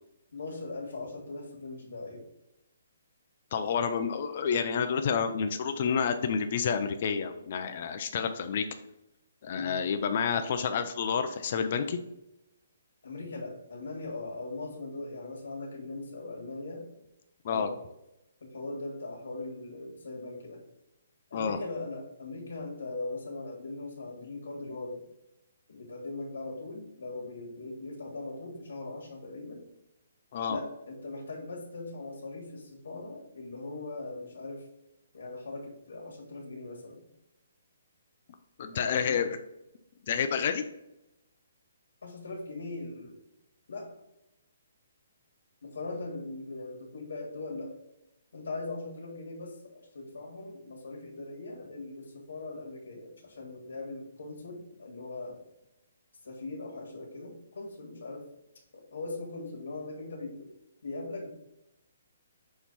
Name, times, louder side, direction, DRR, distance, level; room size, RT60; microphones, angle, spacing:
voice 1, 0.3-2.3 9.5-9.7 13.0-16.8 17.5-17.7 18.4-20.6 21.3-25.0 25.7-29.6 30.5-34.7 35.1-37.1 38.7-39.2 42.0-43.2 43.7-43.9 45.6-47.7 48.3-55.4 56.2-58.3 58.7-60.5 60.8-61.3, left 2 dB, 85° left, -2 dB, 1.8 m, -40 dB
voice 2, 3.5-8.7 9.4-12.0 17.4-17.7 21.3-21.6 30.3-30.6 38.6-39.4 40.1-40.6, left 6 dB, 35° left, 7 dB, 0.4 m, -29 dB
6.3 x 3.0 x 5.4 m, 0.88 s
hypercardioid pair, 175°, 0 cm